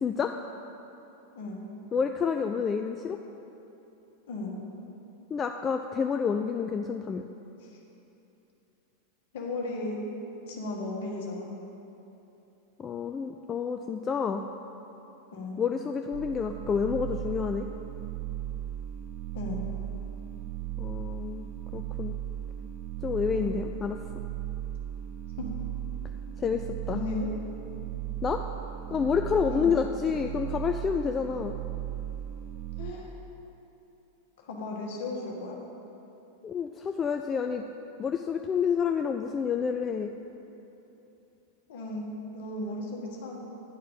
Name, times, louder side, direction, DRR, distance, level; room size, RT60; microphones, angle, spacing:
voice 1, 1.9-3.2 5.3-7.2 12.8-14.5 15.6-17.7 20.8-21.5 21.7-22.2 23.0-24.0 26.4-27.0 28.2-28.4 28.9-31.5 36.4-37.6 38.0-40.1, left 6 dB, 20° left, 5 dB, 0.3 m, -29 dB
voice 2, 4.3-4.6 7.6-7.7 9.3-10.0 10.5-11.5 15.3-15.6 19.3-19.6 23.3-23.6 25.4-25.5 26.9-27.3 29.5-29.8 32.8-33.2 34.4-35.6 41.7-42.0 42.3-43.4, left 2 dB, 55° left, -1 dB, 1.5 m, -35 dB
sound 1, 16.1-32.9, right 11 dB, 40° right, 0.6 m, -36 dB
9.9 x 4.6 x 7.2 m, 3.0 s
figure-of-eight pair, 90°, 0 cm